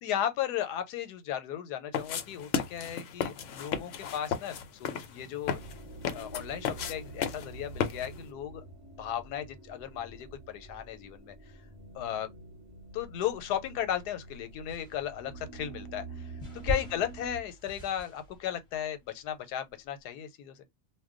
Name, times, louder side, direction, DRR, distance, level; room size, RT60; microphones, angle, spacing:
voice 1, 0.0-5.6 6.1-8.6 9.0-11.3 11.9-12.3 12.9-20.6, left 10 dB, 85° left, 1.2 m, -35 dB
sound 1, 1.9-8.3, left 7 dB, 65° left, 0.8 m, -35 dB
sound 2, 5.4-17.4, right 3 dB, 25° right, 0.9 m, -47 dB
sound 3, 13.3-14.1 14.7-20.0, equal, 25° left, 0.7 m, -41 dB
2.5 x 2.2 x 3.6 m
omnidirectional pair, 1.7 m